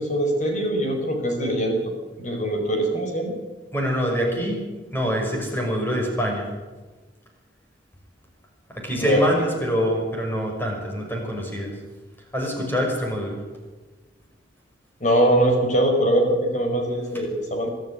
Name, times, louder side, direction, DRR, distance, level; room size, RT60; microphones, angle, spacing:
voice 1, 0.0-1.8 2.2-3.3 9.0-9.2 15.0-17.7, right 1 dB, 40° left, 3 dB, 5.1 m, -22 dB
voice 2, 3.7-4.6 4.9-6.5 8.7-11.7 12.3-13.4, equal, 10° left, 0 dB, 5.9 m, -25 dB
23.5 x 13.5 x 10.0 m, 1.2 s
head